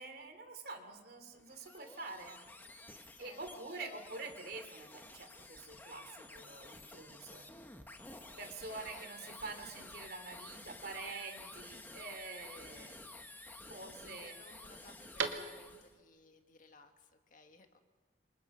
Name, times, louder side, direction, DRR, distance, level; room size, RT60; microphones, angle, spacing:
voice 1, 0.0-2.4 2.7-7.5 8.4-13.2 13.7-14.3, right 3 dB, 50° right, 7 dB, 3.0 m, -47 dB
sound 1, 1.3-15.9, left 2 dB, 10° left, 1.3 m, -52 dB
sound 2, 7.5-16.0, right 5 dB, 75° right, 2.2 m, -48 dB
voice 2, 8.7-9.3 14.0-17.8, left 3 dB, 45° left, 5 dB, 1.8 m, -60 dB
28.5 x 26.0 x 5.6 m, 1.4 s
head